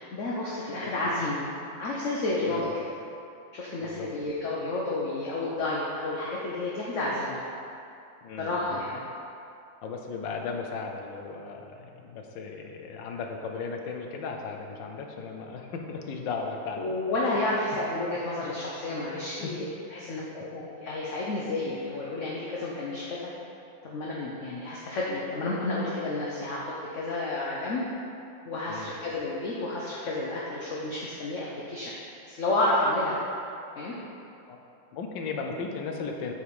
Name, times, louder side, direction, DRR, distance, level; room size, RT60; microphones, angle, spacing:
voice 1, 0.0-1.4 1.8-2.7 3.5-7.4 8.4-9.0 16.8-19.6 19.9-23.2 23.8-27.8 28.4-31.9 32.2-33.3 33.8-33.9, left 2 dB, 50° left, -5 dB, 1.0 m, -30 dB
voice 2, 3.8-4.1 8.2-8.8 9.8-16.8 18.4-18.5 18.9-19.5 28.7-28.9 34.5-34.6 34.9-36.3, left 4 dB, 80° left, 3 dB, 1.5 m, -36 dB
8.4 x 5.1 x 4.8 m, 2.7 s
omnidirectional pair, 2.0 m